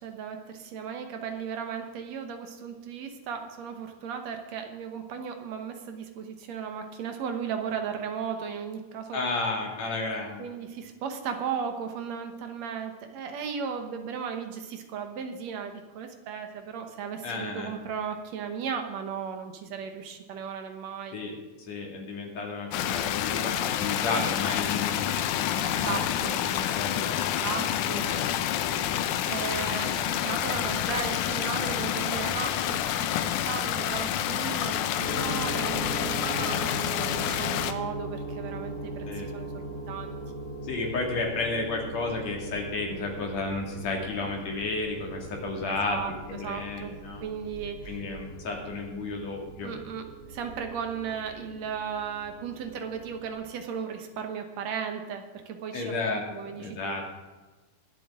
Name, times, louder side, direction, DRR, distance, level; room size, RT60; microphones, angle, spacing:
voice 1, 0.0-9.2 10.4-21.2 23.3-23.7 25.6-26.4 27.2-28.1 29.2-40.2 45.6-46.1 46.4-48.0 49.6-57.0, right 7 dB, 65° right, 5 dB, 2.2 m, -36 dB
voice 2, 9.1-10.4 17.2-17.7 21.1-21.3 21.7-27.4 27.9-28.3 28.7-29.1 39.0-39.3 40.6-47.2 47.9-49.7 55.7-57.1, left 3 dB, 60° left, 0 dB, 3.4 m, -33 dB
sound 1, 22.7-37.7, left 11 dB, 90° left, 2.2 m, -28 dB
sound 2, 35.0-53.3, right 1 dB, 30° left, 3.2 m, -40 dB
22.5 x 7.7 x 3.7 m, 1.3 s
omnidirectional pair, 3.5 m